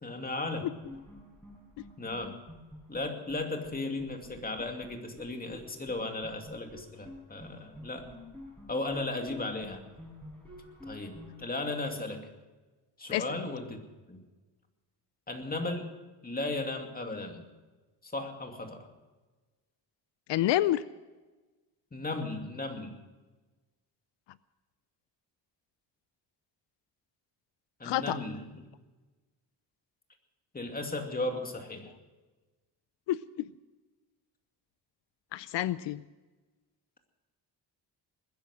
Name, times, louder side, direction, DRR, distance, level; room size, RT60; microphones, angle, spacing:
voice 1, 0.0-0.7 2.0-2.4 2.9-8.1 8.7-9.8 10.9-12.3 13.0-13.8 14.1-14.2 15.3-15.9 16.2-17.4 18.0-18.9 21.9-22.9 27.8-28.4 30.5-31.9, left 2 dB, 20° left, 4 dB, 2.5 m, -35 dB
sound 1, 0.8-3.4 3.6-3.7 4.0-5.6 5.9-6.0 6.2-11.5, left 1 dB, 5° left, 5.7 m, -49 dB
voice 2, 20.3-20.8 27.8-28.2 33.1-33.5 35.3-36.0, left 14 dB, 85° left, 17 dB, 0.6 m, -28 dB
21.0 x 10.5 x 6.3 m, 1.2 s
cardioid pair, 115°, 42 cm